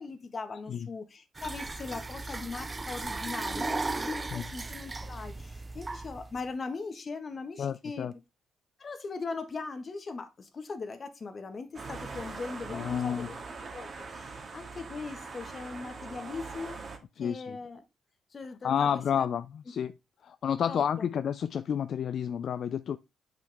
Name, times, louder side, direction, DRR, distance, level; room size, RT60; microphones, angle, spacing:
voice 1, 0.0-8.1 8.8-13.4 13.7-16.8 17.2-17.8 18.3-19.3 20.7-21.1, left 4 dB, 40° left, 1.5 m, -40 dB
sound 1, 1.3-6.4, right 3 dB, 25° right, 0.3 m, -36 dB
voice 2, 7.6-8.1 12.7-13.3 17.2-17.6 18.6-19.9 20.2-23.0, left 8 dB, 60° left, 0.4 m, -30 dB
sound 2, 11.7-17.0, right 4 dB, 40° right, 1.9 m, -42 dB
8.4 x 5.9 x 3.5 m
cardioid pair, 90°, 0 cm